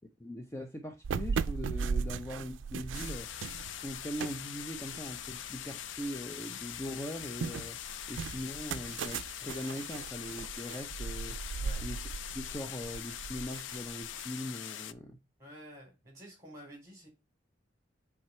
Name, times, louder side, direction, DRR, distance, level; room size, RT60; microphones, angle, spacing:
voice 1, 0.2-3.3 3.6-7.8 8.1-11.4 11.8-12.0 12.3-15.2, left 1 dB, 15° left, 0.6 m, -41 dB
sound 1, 1.0-6.2 6.6-14.2, right 5 dB, 75° right, 0.4 m, -38 dB
sound 2, 2.9-14.9, left 11 dB, 70° left, 0.4 m, -43 dB
voice 2, 15.4-17.1, equal, 15° right, 4.0 m, -50 dB
7.8 x 3.5 x 4.3 m
head